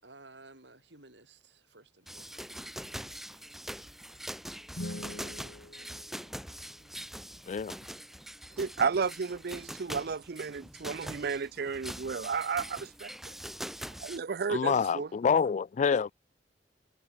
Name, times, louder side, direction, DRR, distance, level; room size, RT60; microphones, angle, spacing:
voice 1, 0.0-3.4 6.7-7.1 14.8-15.0, right 2 dB, 85° right, 6.3 m, -57 dB
sound 1, 2.1-14.2, equal, ahead, 3.8 m, -43 dB
sound 2, 4.7-6.9, left 1 dB, 70° left, 2.6 m, -44 dB
voice 2, 8.6-13.3 14.0-15.1, right 5 dB, 60° right, 0.5 m, -33 dB
voice 3, 14.5-16.1, left 6 dB, 40° left, 0.3 m, -27 dB
head